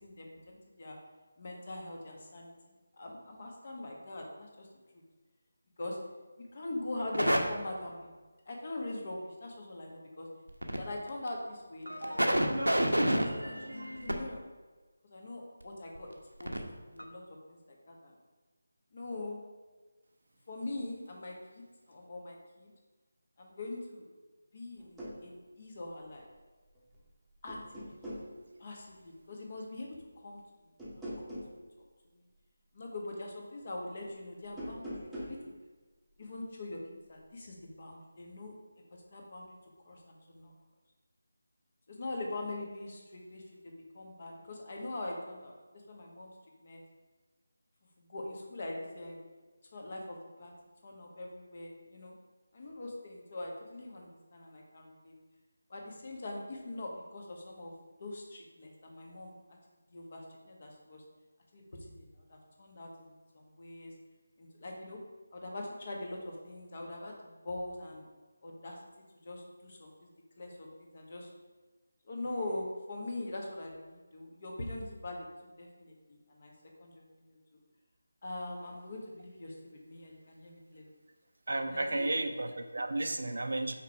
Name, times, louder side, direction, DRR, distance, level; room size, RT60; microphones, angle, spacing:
voice 1, 0.0-1.0 1.4-2.5 3.0-4.7 5.8-6.0 6.4-8.1 8.5-10.3 10.8-12.8 13.1-14.4 15.0-18.2 18.9-19.4 20.5-22.7 23.4-24.1 24.5-26.2 27.4-28.0 28.6-30.4 31.0-31.6 32.1-32.2 32.7-35.5 36.2-36.8 37.1-38.5 39.1-39.5 39.8-40.5 41.9-45.6 45.9-46.3 46.6-46.8 48.0-49.2 49.7-50.5 50.8-52.1 52.5-55.1 55.7-57.7 58.0-59.4 59.9-61.0 61.5-63.9 64.4-65.0 65.3-68.1 68.4-68.8 69.2-70.1 70.4-71.3 72.0-76.5 76.8-77.6 78.2-80.9 81.6-82.2, left 2 dB, 40° left, 0 dB, 1.4 m, -43 dB
sound 1, 7.1-7.4 10.5-10.8 11.3-11.4 11.9-14.1 15.9-16.0 16.4-16.6 17.0-17.1, equal, 85° right, 1.0 m, -29 dB
sound 2, 24.8-25.2 26.7-27.1 27.5-28.3 30.8-31.6 34.4-35.4, equal, ahead, 1.1 m, -42 dB
voice 2, 81.5-83.7, right 2 dB, 60° right, 6 dB, 0.6 m, -33 dB
5.7 x 4.6 x 4.8 m, 1.3 s
figure-of-eight pair, 160°, 0 cm